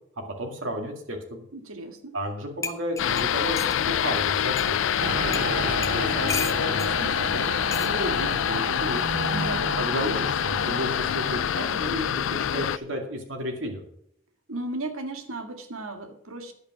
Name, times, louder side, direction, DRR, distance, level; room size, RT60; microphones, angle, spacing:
voice 1, 0.2-1.4 2.1-9.0 9.8-13.8, equal, 65° right, 2 dB, 2.2 m, -33 dB
voice 2, 1.5-2.2 9.3-9.9 14.5-16.5, right 2 dB, 85° right, 7 dB, 1.8 m, -35 dB
sound 1, 2.2-2.3 2.6-3.8 4.6-4.7 5.3-5.5 5.8-6.9 7.7-7.9 9.0-9.3, left 4 dB, 15° left, 0.8 m, -34 dB
sound 2, 3.0-12.8, left 9 dB, 65° left, 0.4 m, -26 dB
Mechanical fan, 5.0-11.4, right 5 dB, 40° right, 0.4 m, -34 dB
11.0 x 8.5 x 6.0 m, 0.69 s
head